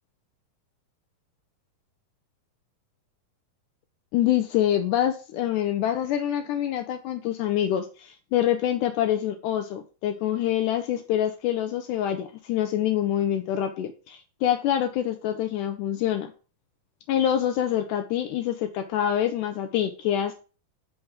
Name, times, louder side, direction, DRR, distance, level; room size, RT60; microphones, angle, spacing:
voice 1, 4.1-16.3 17.1-20.3, left 11 dB, 80° left, 7 dB, 1.9 m, -26 dB
5.7 x 3.3 x 5.5 m, 0.36 s
omnidirectional pair, 4.0 m